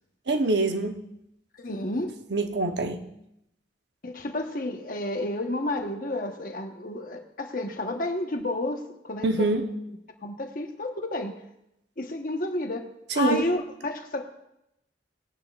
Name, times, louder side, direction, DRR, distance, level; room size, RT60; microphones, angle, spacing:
voice 1, 0.3-0.9 2.3-3.0 9.2-9.6 13.2-13.4, right 2 dB, 70° right, 0.9 m, -24 dB
voice 2, 1.6-2.2 4.0-9.7 10.2-11.3 12.0-12.9 13.1-14.2, left 2 dB, 50° left, 1.1 m, -31 dB
18.5 x 10.5 x 2.4 m
head